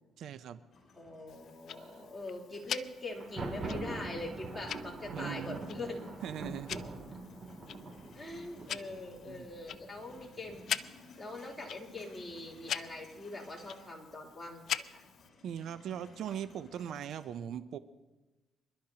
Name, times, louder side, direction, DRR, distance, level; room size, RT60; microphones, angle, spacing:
voice 1, 0.2-0.6 1.8-2.0 5.1-5.6 6.2-6.7 9.3-9.5 15.4-17.8, right 9 dB, 70° right, 12 dB, 0.6 m, -40 dB
sound 1, 0.7-3.0 3.4-6.6 6.9-9.4 9.7-14.0 14.3-17.2, left 2 dB, 50° left, 6.3 m, -60 dB
voice 2, 1.0-6.0 8.1-10.7 11.2-15.0, left 2 dB, 10° left, -3 dB, 3.4 m, -43 dB
Tick-tock, 1.3-15.3, left 9 dB, 65° left, 0.5 m, -44 dB
Thunder, 3.1-10.9, right 2 dB, 40° right, 2.8 m, -43 dB
26.5 x 12.0 x 2.9 m, 1.1 s
cardioid pair, 100°, 0 cm